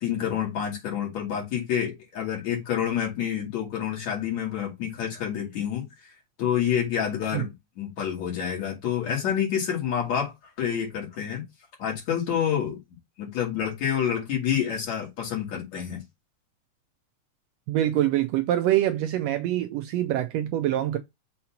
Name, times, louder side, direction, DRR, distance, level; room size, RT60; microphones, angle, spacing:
voice 1, 0.0-6.1 6.4-10.3 10.6-11.4 11.8-12.8 13.2-16.0, left 9 dB, 60° left, 3.1 m, -28 dB
voice 2, 17.7-21.0, right 13 dB, 85° right, 1.4 m, -25 dB
6.6 x 2.9 x 5.7 m
omnidirectional pair, 3.6 m